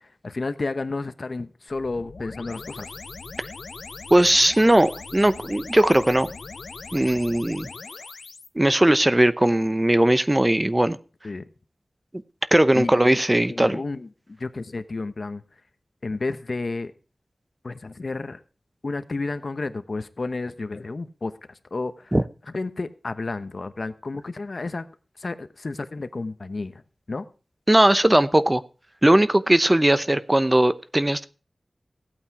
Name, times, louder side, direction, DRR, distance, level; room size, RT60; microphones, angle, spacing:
voice 1, 0.0-2.9 11.2-11.4 12.7-13.2 13.5-15.4 16.0-16.9 17.6-18.4 18.8-22.2 22.5-24.8 25.2-26.8 27.1-27.2, left 3 dB, 60° left, 1.1 m, -31 dB
sound 1, 1.7-8.5, left 4 dB, 90° left, 1.0 m, -40 dB
voice 2, 4.1-6.3 6.9-7.7 8.6-11.0 12.5-13.8 22.1-22.2 27.7-28.6 29.0-31.2, right 1 dB, 20° right, 0.8 m, -19 dB
16.0 x 8.8 x 4.8 m
wide cardioid pair, 85°, 0 cm